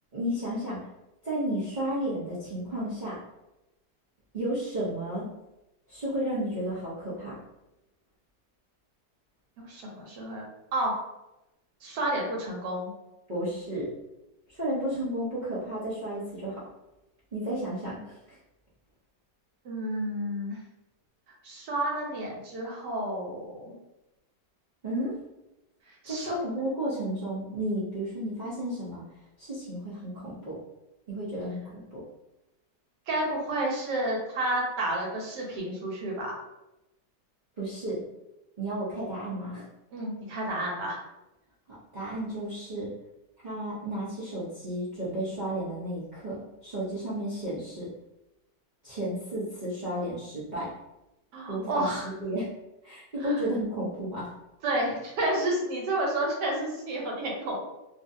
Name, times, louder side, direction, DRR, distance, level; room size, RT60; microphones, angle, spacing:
voice 1, 0.1-0.8 1.2-3.2 4.3-5.3 5.9-7.4 13.3-13.9 14.5-16.6 17.3-18.4 24.8-25.1 26.0-29.0 29.4-30.6 31.1-32.0 37.6-38.1 38.6-39.6 41.9-42.9 43.4-47.9 48.8-50.7 51.5-52.5 52.8-54.3, right 1 dB, 55° right, -10 dB, 0.5 m, -32 dB
voice 2, 9.7-10.5 10.7-11.0 11.8-12.9 19.6-20.6 21.4-23.7 26.0-26.3 33.1-36.3 39.9-41.0 51.3-52.1 53.2-53.4 54.6-57.6, right 1 dB, 75° right, -2 dB, 1.4 m, -30 dB
2.8 x 2.6 x 2.5 m, 0.94 s
omnidirectional pair, 1.8 m